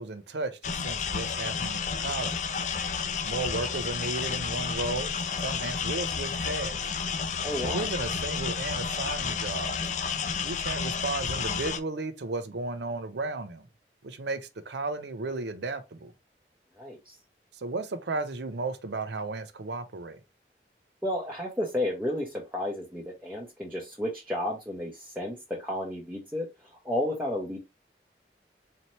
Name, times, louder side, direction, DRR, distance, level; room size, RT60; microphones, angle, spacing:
voice 1, 0.0-2.4 3.2-6.8 7.6-9.8 10.4-13.7 14.0-16.1 17.5-20.2, right 3 dB, 80° right, 0.6 m, -34 dB
sound 1, 0.6-11.8, left 6 dB, 45° left, 0.4 m, -31 dB
voice 2, 7.4-7.9 16.8-17.2 21.0-27.6, left 1 dB, 10° right, 0.7 m, -32 dB
4.1 x 2.8 x 3.1 m
head